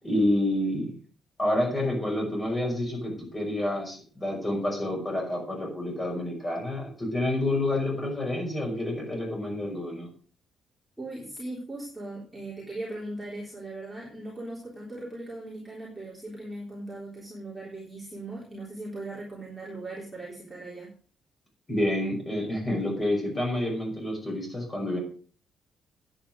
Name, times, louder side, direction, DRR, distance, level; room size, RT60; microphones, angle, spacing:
voice 1, 0.0-0.9 1.4-10.1 21.7-25.0, left 1 dB, 15° left, 0 dB, 5.6 m, -28 dB
voice 2, 11.0-20.9, right 2 dB, 5° right, -6 dB, 3.6 m, -39 dB
10.0 x 9.0 x 6.3 m, 0.43 s
cardioid pair, 170°, 0 cm